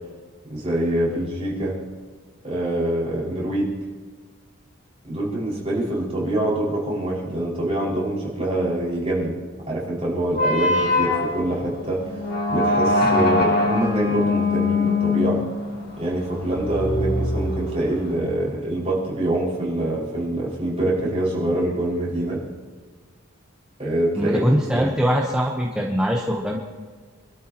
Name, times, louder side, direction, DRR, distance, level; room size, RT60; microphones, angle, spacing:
voice 1, 0.5-1.7 2.4-3.7 5.0-9.4 9.7-12.1 12.5-15.4 16.0-22.4 23.8-24.4 24.7-24.9, right 1 dB, 30° right, -6 dB, 5.5 m, -25 dB
sound 1, 10.3-18.1, left 2 dB, 45° left, 2.1 m, -23 dB
voice 2, 24.2-26.6, equal, 5° right, -2 dB, 1.0 m, -22 dB
26.5 x 13.0 x 3.0 m, 1.5 s
head